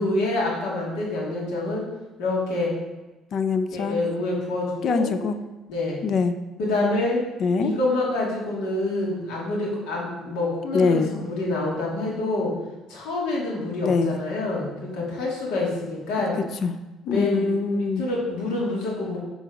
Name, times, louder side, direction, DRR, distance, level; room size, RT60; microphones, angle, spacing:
voice 1, 0.0-1.8 2.2-2.7 3.7-5.1 5.7-6.0 6.6-7.2 7.6-12.6 12.9-16.4 17.1-19.2, left 2 dB, 90° left, -4 dB, 2.4 m, -27 dB
voice 2, 3.3-4.0 4.8-5.4 6.0-6.4 7.4-7.7 10.7-11.1 13.8-14.2 16.4-16.7 17.1-18.0, left 4 dB, 45° left, 10 dB, 0.4 m, -23 dB
7.5 x 3.9 x 5.1 m, 1.1 s
cardioid pair, 145°, 0 cm